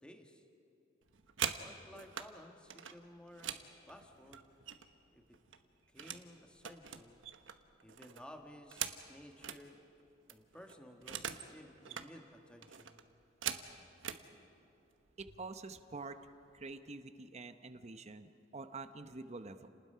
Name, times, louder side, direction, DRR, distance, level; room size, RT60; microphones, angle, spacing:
voice 1, 0.0-0.4 1.6-3.6 3.9-4.5 5.1-5.4 5.9-7.2 7.8-9.8 10.3-13.0, equal, 5° left, 3 dB, 1.7 m, -55 dB
sound 1, 1.0-2.3 2.7-5.0 5.3-6.3 6.6-9.6 10.0-10.1 10.3-11.5 11.8-12.1 12.6-14.2 15.1-15.2 15.6-15.9 16.2-16.7, right 9 dB, 85° right, 1.1 m, -43 dB
voice 2, 15.2-16.2 16.5-19.7, right 3 dB, 35° right, 9 dB, 0.8 m, -47 dB
30.0 x 19.5 x 5.6 m, 2.7 s
head